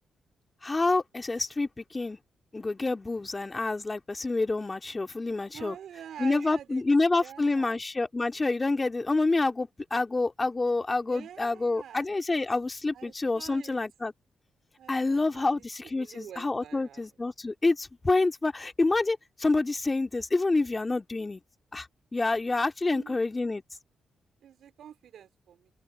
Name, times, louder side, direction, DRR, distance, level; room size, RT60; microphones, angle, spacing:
voice 1, 0.6-2.2 2.5-5.8 6.2-14.1 14.9-21.4 21.7-23.6, left 3 dB, 30° left, 2.7 m, -28 dB
voice 2, 5.5-6.8 7.2-7.8 11.1-12.1 12.9-13.8 14.8-17.1 22.8-23.2 24.4-25.7, right 9 dB, 75° right, 3.9 m, -46 dB
hypercardioid pair, 45°, 0 cm